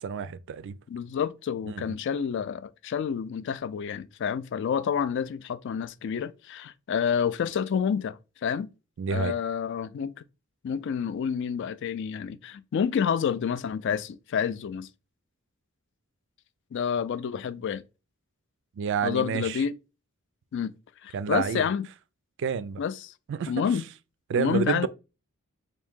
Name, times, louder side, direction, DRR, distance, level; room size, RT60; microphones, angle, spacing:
voice 1, 0.0-0.7 1.7-1.9 9.0-9.3 18.8-19.6 21.1-21.7 22.4-22.8 23.3-23.5 24.3-24.9, right 6 dB, 60° right, 0.3 m, -29 dB
voice 2, 0.9-8.7 9.1-10.1 10.6-14.9 16.7-17.9 19.0-19.7 20.5-20.7 21.0-21.9 22.8-23.1 23.5-23.8 24.4-24.9, left 7 dB, 60° left, 0.3 m, -29 dB
3.7 x 2.6 x 3.5 m
head